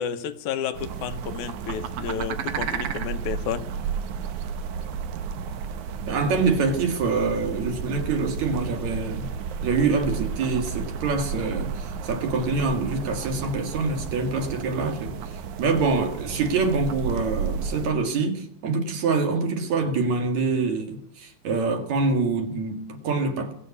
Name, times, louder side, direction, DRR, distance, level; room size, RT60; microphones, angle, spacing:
voice 1, 0.0-3.7, left 8 dB, 85° left, 2.4 m, -31 dB
sound 1, 0.7-17.9, right 6 dB, 85° right, 2.5 m, -32 dB
voice 2, 6.1-9.3 9.6-23.5, right 4 dB, 70° right, 3.3 m, -25 dB
22.0 x 7.6 x 8.3 m
omnidirectional pair, 3.3 m